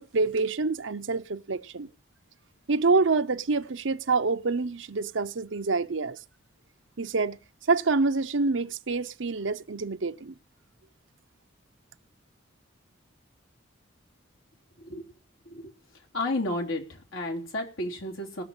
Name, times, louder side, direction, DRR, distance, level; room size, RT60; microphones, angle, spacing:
voice 1, 0.0-1.9 2.7-6.2 7.0-7.4 7.7-10.3, right 4 dB, 75° right, 0.8 m, -26 dB
voice 2, 16.1-18.4, left 1 dB, 85° left, 3.6 m, -32 dB
19.0 x 6.8 x 7.2 m
head